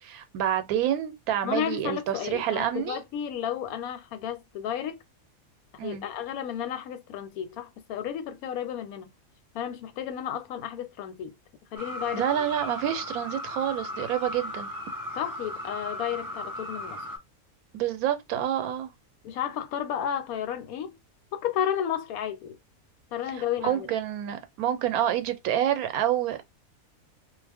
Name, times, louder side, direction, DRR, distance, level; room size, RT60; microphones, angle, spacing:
voice 1, 0.0-3.0 5.8-6.1 12.1-14.7 17.7-18.9 23.6-26.5, right 11 dB, 90° right, 1.0 m, -28 dB
voice 2, 1.4-5.0 5.7-9.1 9.5-11.3 11.7-12.3 15.2-17.0 19.2-21.0 21.3-22.6 23.1-23.9, left 9 dB, 85° left, 1.1 m, -32 dB
sound 1, 11.8-17.2, left 1 dB, 35° right, 0.3 m, -36 dB
2.4 x 2.1 x 3.3 m
omnidirectional pair, 1.5 m